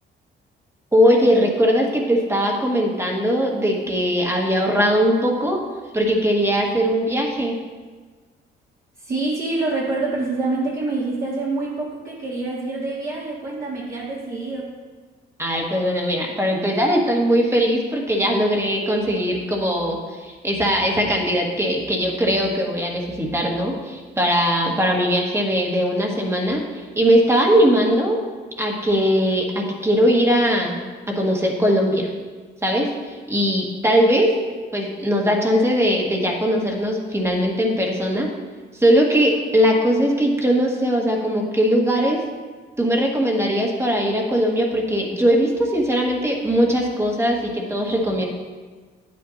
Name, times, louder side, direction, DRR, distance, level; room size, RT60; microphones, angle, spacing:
voice 1, 0.9-5.6 5.9-7.5 15.4-28.2 28.6-30.8 31.1-32.1 32.6-34.3 34.7-38.3 38.7-42.2 42.8-48.3, equal, 15° right, -1 dB, 1.6 m, -20 dB
voice 2, 9.0-14.7, right 3 dB, 45° right, -8 dB, 1.9 m, -26 dB
9.4 x 8.7 x 2.8 m, 1.4 s
cardioid pair, 90°, 20 cm